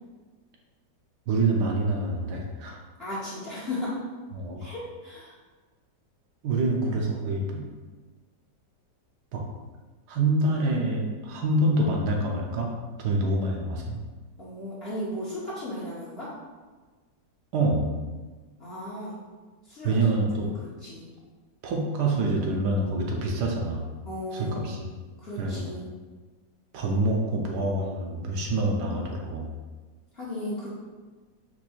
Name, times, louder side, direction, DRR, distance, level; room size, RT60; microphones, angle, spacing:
voice 1, 1.3-2.8 4.3-4.7 6.4-7.7 9.3-9.4 10.1-12.7 13.0-14.0 17.5-17.9 19.8-20.5 21.6-23.9 24.3-24.9 25.4-25.8 26.7-29.5, right 2 dB, 75° right, 0 dB, 1.2 m, -26 dB
voice 2, 3.0-3.9 4.6-5.3 14.4-16.3 18.6-19.1 19.7-20.0 20.3-20.5 20.8-21.1 24.1-24.7 25.2-25.9 30.1-30.7, left 1 dB, 50° left, -7 dB, 0.8 m, -35 dB
4.6 x 2.6 x 4.1 m, 1.3 s
omnidirectional pair, 1.9 m